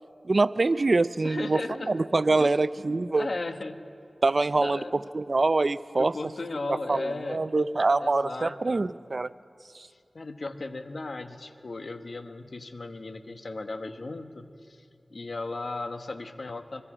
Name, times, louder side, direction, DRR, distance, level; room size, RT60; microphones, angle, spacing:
voice 1, 0.2-1.6 1.9-3.3 4.2-4.8 5.1-6.1 6.9-7.0 7.3-9.3, right 3 dB, 60° right, 16 dB, 0.4 m, -24 dB
voice 2, 1.2-2.0 2.3-2.6 3.1-3.8 4.5-4.9 6.0-7.4 8.0-8.8 9.8-16.8, left 3 dB, 70° left, 8 dB, 1.2 m, -36 dB
25.0 x 22.0 x 5.0 m, 2.5 s
cardioid pair, 40°, 0 cm